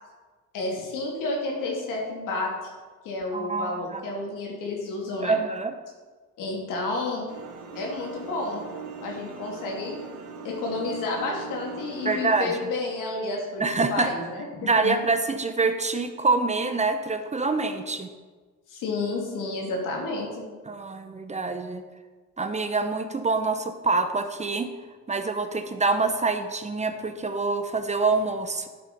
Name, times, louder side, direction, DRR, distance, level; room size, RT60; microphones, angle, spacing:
voice 1, 0.5-2.5 3.0-5.4 6.4-7.3 7.7-8.6 9.0-9.9 10.4-15.0 18.7-20.4, left 2 dB, 85° left, -1 dB, 2.7 m, -30 dB
voice 2, 3.3-4.0 5.2-5.7 12.0-12.6 13.6-14.1 14.6-18.1 20.7-21.8 22.4-24.7 25.1-28.7, right 3 dB, 20° right, 8 dB, 0.8 m, -26 dB
sound 1, 7.3-12.4, right 5 dB, 75° right, 1.5 m, -40 dB
11.5 x 5.5 x 5.4 m, 1.4 s
cardioid pair, 90°, 31 cm